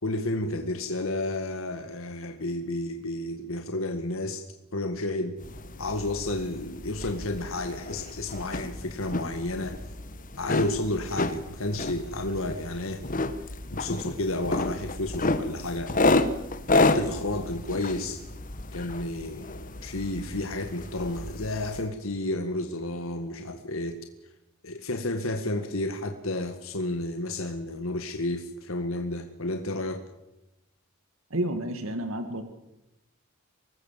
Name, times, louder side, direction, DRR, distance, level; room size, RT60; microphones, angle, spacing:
voice 1, 0.0-4.5 4.7-5.3 5.8-9.8 10.4-13.0 13.7-15.9 16.7-18.2 18.7-24.0 24.6-30.0, left 2 dB, 75° left, 6 dB, 1.9 m, -31 dB
sound 1, 5.4-21.9, left 2 dB, 40° left, 1.5 m, -30 dB
voice 2, 31.3-32.4, right 1 dB, 75° right, 7 dB, 2.2 m, -30 dB
25.0 x 20.0 x 7.6 m, 0.95 s
head